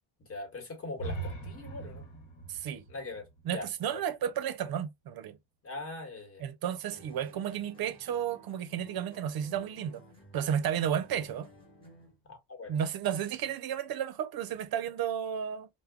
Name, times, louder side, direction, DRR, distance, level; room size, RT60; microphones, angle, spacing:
voice 1, 0.2-2.1 2.9-4.0 5.6-6.4 12.3-12.8, left 3 dB, 30° left, 1.3 m, -42 dB
sound 1, 0.9-4.8, right 3 dB, 60° left, 1.1 m, -42 dB
voice 2, 2.5-2.8 3.5-5.4 6.4-10.0 10.3-11.5 12.7-15.7, right 9 dB, 55° right, 0.5 m, -32 dB
sound 2, 6.9-12.2, equal, 10° left, 1.2 m, -56 dB
2.2 x 2.1 x 3.5 m
cardioid pair, 110°, 46 cm